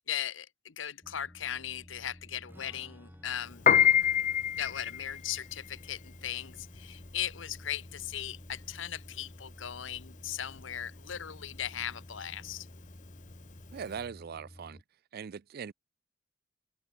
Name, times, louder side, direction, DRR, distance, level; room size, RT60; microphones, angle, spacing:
voice 1, 0.1-3.6 4.6-12.7, left 10 dB, 75° left, 0.9 m, -38 dB
sound 1, 1.0-14.8, equal, 20° left, 2.4 m, -52 dB
Strum, 2.5-8.1, equal, 10° right, 5.6 m, -63 dB
Piano, 3.5-13.9, left 9 dB, 40° left, 0.5 m, -29 dB
voice 2, 13.7-14.8 15.1-15.7, right 6 dB, 55° right, 0.4 m, -40 dB
open air
head